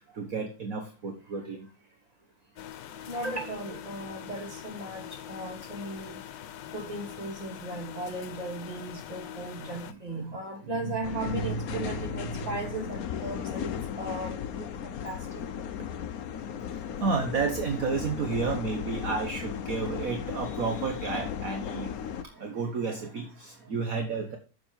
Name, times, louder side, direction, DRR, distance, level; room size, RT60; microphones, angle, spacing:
voice 1, 0.1-1.7 9.6-10.5 10.8-12.7 17.0-22.0 22.2-24.4, right 4 dB, 50° right, 1.5 m, -32 dB
sound 1, 2.6-9.9, left 10 dB, 75° left, 1.5 m, -43 dB
voice 2, 3.1-6.2 6.7-15.5, right 2 dB, 20° right, 2.9 m, -37 dB
sound 2, 11.0-22.2, left 9 dB, 60° left, 1.0 m, -36 dB
7.8 x 7.2 x 7.4 m
omnidirectional pair, 2.0 m